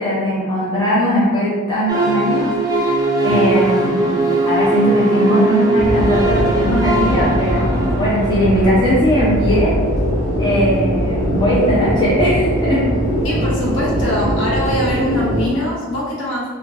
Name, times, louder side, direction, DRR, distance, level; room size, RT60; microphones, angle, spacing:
voice 1, 0.0-2.5 2.8-2.9 3.2-9.8 10.4-12.9, equal, 20° left, -9 dB, 0.7 m, -18 dB
sound 1, 1.9-8.8, right 2 dB, 15° right, 0.5 m, -19 dB
sound 2, 5.8-15.5, equal, 30° right, 0.8 m, -21 dB
voice 2, 13.2-16.4, left 1 dB, 55° left, -5 dB, 0.7 m, -22 dB
2.8 x 2.5 x 2.5 m, 1.4 s
head